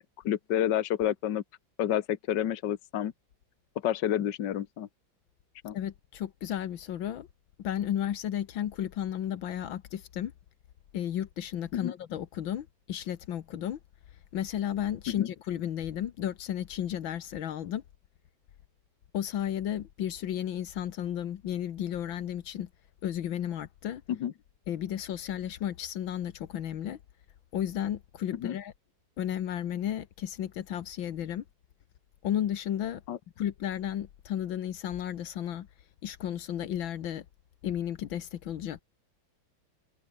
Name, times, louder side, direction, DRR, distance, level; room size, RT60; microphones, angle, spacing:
voice 1, 0.0-1.4 1.8-3.1 3.8-4.9 5.6-5.7 11.7-11.9 15.1-15.3 24.1-24.3 28.3-28.6 33.1-33.2, left 11 dB, 65° left, 1.7 m, -29 dB
voice 2, 5.7-7.3 7.6-10.3 10.9-13.8 14.3-17.8 19.1-22.7 23.0-24.0 24.7-27.0 27.5-28.7 29.2-31.4 32.2-33.0 33.4-35.7 36.0-37.3 37.6-38.8, left 10 dB, 80° left, 1.9 m, -33 dB
omnidirectional pair, 2.1 m